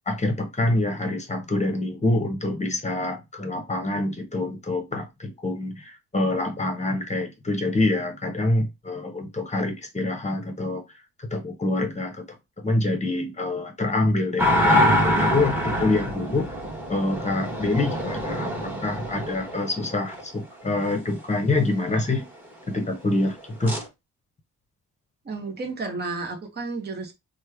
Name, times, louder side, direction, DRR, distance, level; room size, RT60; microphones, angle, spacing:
voice 1, 0.1-10.8 11.2-12.2 12.6-16.5 16.9-22.3 22.7-23.8, left 2 dB, 20° left, 1.0 m, -26 dB
sound 1, 14.4-20.2 23.7-23.8, equal, 5° right, 1.3 m, -24 dB
voice 2, 25.2-27.1, right 3 dB, 30° right, 0.9 m, -32 dB
3.1 x 2.2 x 3.3 m
cardioid pair, 75°, 32 cm